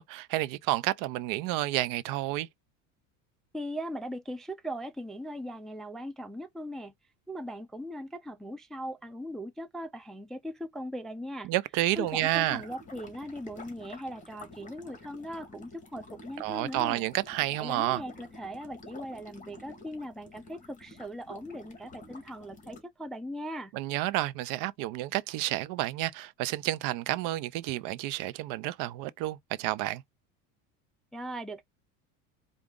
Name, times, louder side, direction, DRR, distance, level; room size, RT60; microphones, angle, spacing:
voice 1, 0.0-2.5 11.4-12.6 16.4-18.0 23.7-30.0, right 16 dB, 65° right, 0.6 m, -30 dB
voice 2, 3.5-6.9 7.3-11.5 12.0-17.0 17.6-23.7 31.1-31.6, equal, ahead, 0.3 m, -39 dB
sound 1, 11.9-22.8, left 2 dB, 20° left, 1.7 m, -50 dB
4.8 x 2.5 x 3.7 m
supercardioid pair, 120°, 36 cm